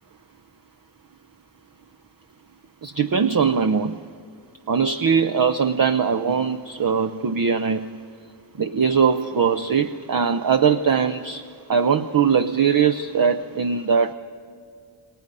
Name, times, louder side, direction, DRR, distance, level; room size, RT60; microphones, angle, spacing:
voice 1, 2.8-3.9 4.7-7.9 8.6-14.1, right 6 dB, 45° right, 10 dB, 0.7 m, -21 dB
28.5 x 23.0 x 5.4 m, 2.3 s
wide cardioid pair, 75°, 47 cm